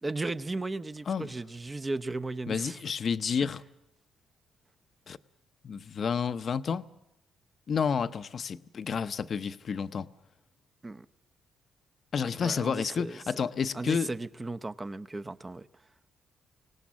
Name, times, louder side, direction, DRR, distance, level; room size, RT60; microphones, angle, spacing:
voice 1, 0.0-2.8 3.4-3.5 10.8-11.1 12.4-13.2 13.7-15.7, right 2 dB, 20° right, 0.7 m, -35 dB
voice 2, 2.5-3.6 5.1-5.2 5.6-6.8 7.7-10.1 12.1-14.1, left 6 dB, 50° left, 0.7 m, -30 dB
25.0 x 18.5 x 7.3 m
cardioid pair, 90°, 0 cm